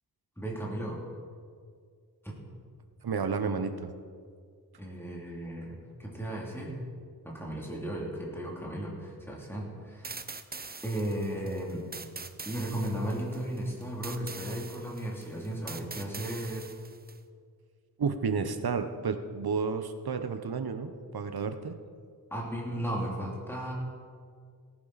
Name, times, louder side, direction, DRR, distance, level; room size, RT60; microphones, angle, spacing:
voice 1, 0.4-1.0 2.2-2.3 4.8-6.8 7.2-10.2 10.8-11.8 12.5-16.7 22.3-23.7, right 1 dB, 5° left, -3 dB, 2.9 m, -35 dB
voice 2, 3.0-3.9 18.0-21.7, right 5 dB, 70° right, 8 dB, 1.0 m, -31 dB
sound 1, 10.0-17.2, right 4 dB, 25° right, 0.6 m, -44 dB
18.0 x 11.0 x 4.2 m, 2.1 s
wide cardioid pair, 95°, 39 cm